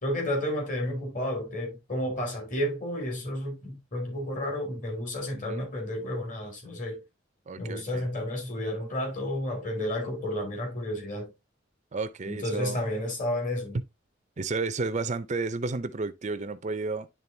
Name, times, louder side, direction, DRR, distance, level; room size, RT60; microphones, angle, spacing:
voice 1, 0.0-7.0 7.6-11.3 12.3-13.8, left 1 dB, 40° left, 2.6 m, -31 dB
voice 2, 5.3-5.7 7.5-8.1 11.9-12.8 14.4-17.1, right 3 dB, 35° right, 0.5 m, -32 dB
10.5 x 3.8 x 2.7 m
head